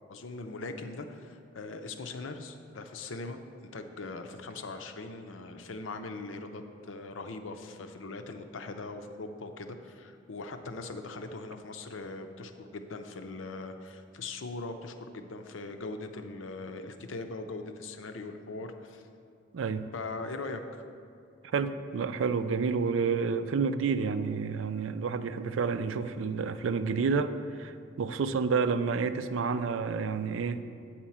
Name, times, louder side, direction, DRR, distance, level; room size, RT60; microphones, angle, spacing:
voice 1, 0.1-3.4 3.7-19.1 19.9-20.8, left 3 dB, 80° left, 7 dB, 0.6 m, -40 dB
voice 2, 19.5-19.9 21.5-30.6, right 5 dB, 80° right, 11 dB, 0.4 m, -29 dB
8.6 x 4.4 x 7.2 m, 2.5 s
head